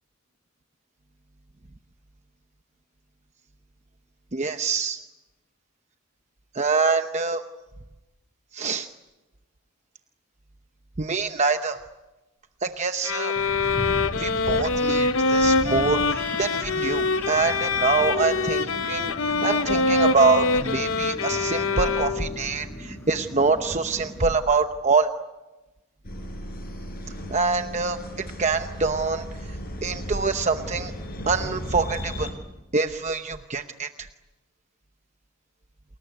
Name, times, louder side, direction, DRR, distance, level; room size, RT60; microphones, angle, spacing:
voice 1, 4.3-5.0 6.5-7.4 8.5-8.9 11.0-11.8 12.6-13.3 14.2-25.1 27.3-28.0 28.4-29.2 29.8-30.9 31.3-32.3 32.7-34.1, right 4 dB, 35° right, 7 dB, 0.9 m, -25 dB
sound 1, 13.0-22.5, left 3 dB, 70° left, 0.9 m, -24 dB
Wind, 13.4-24.4, equal, 10° left, 4.6 m, -37 dB
sound 2, 26.0-32.3, equal, 45° left, 6.1 m, -35 dB
29.0 x 21.0 x 9.4 m, 1.1 s
head